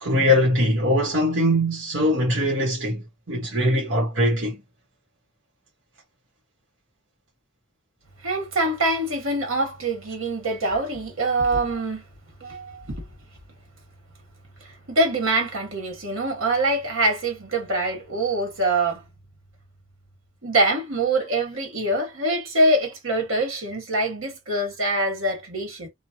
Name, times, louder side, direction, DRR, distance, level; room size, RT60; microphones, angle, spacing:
voice 1, 0.0-3.0 3.3-4.6, left 1 dB, 70° right, 1.2 m, -21 dB
voice 2, 8.2-12.0 12.4-13.0 14.9-19.0 20.4-25.9, right 2 dB, 90° right, 1.7 m, -24 dB
3.2 x 2.3 x 2.8 m
head